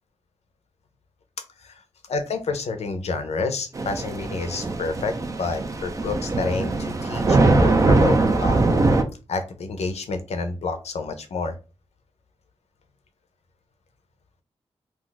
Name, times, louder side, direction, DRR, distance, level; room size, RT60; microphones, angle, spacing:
voice 1, 2.1-8.2 8.4-8.6 9.3-11.5, left 4 dB, 80° left, 7 dB, 0.6 m, -29 dB
Thunder / Rain, 3.8-9.0, right 2 dB, 30° right, 0.4 m, -21 dB
2.4 x 2.4 x 3.8 m, 0.32 s
wide cardioid pair, 175°, 11 cm